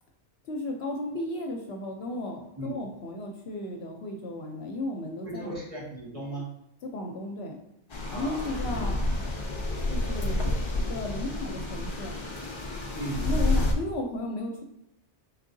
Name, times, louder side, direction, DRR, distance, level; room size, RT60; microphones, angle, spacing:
voice 1, 0.5-5.5 6.8-7.6 8.1-9.0 9.9-10.5 10.9-12.2 13.2-14.6, left 2 dB, 70° left, 2 dB, 0.8 m, -34 dB
voice 2, 5.2-6.5 8.1-8.9 12.9-13.6, right 1 dB, 30° right, -7 dB, 1.6 m, -37 dB
sound 1, 7.9-13.7, left 2 dB, 35° left, 0.5 m, -29 dB
4.4 x 3.6 x 2.6 m, 0.81 s
omnidirectional pair, 1.2 m